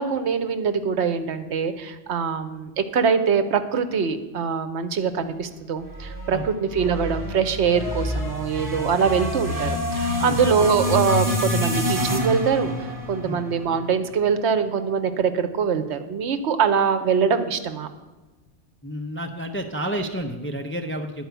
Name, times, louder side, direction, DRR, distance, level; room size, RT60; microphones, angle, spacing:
voice 1, 0.0-12.7 13.1-17.9, right 6 dB, 75° right, 10 dB, 1.0 m, -23 dB
sound 1, 5.9-14.2, left 1 dB, 30° right, 1.6 m, -27 dB
voice 2, 18.8-21.3, equal, 15° left, 4 dB, 0.4 m, -30 dB
10.5 x 4.8 x 8.0 m, 1.2 s
omnidirectional pair, 1.2 m